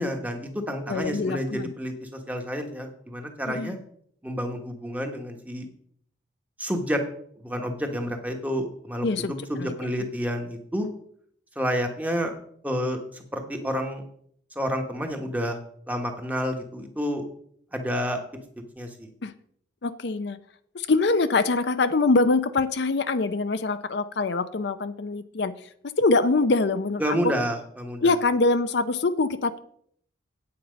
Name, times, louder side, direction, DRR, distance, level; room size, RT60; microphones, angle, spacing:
voice 1, 0.0-3.8 4.2-5.7 6.6-7.0 7.4-9.1 9.5-10.9 11.6-12.3 12.6-13.0 13.3-14.0 14.5-15.6 15.9-17.3 17.7-18.2 18.8-19.1 27.0-28.1, equal, 10° right, 3 dB, 1.2 m, -29 dB
voice 2, 0.9-1.7 3.5-3.8 9.0-9.3 9.6-9.7 19.2-19.3 19.8-20.4 20.7-25.5 26.0-27.3 28.0-29.6, left 3 dB, 60° left, 11 dB, 0.5 m, -24 dB
8.7 x 8.6 x 5.2 m, 0.65 s
head